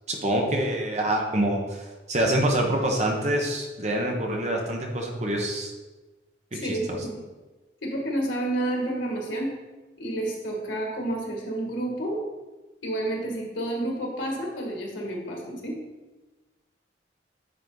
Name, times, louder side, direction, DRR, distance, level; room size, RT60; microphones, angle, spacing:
voice 1, 0.1-5.7 6.5-7.0, right 1 dB, 35° right, 1 dB, 1.1 m, -26 dB
voice 2, 6.5-7.2 7.8-9.5 10.0-12.2 12.8-15.8, right 1 dB, 90° left, -1 dB, 2.0 m, -30 dB
9.8 x 4.3 x 4.0 m, 1.2 s
head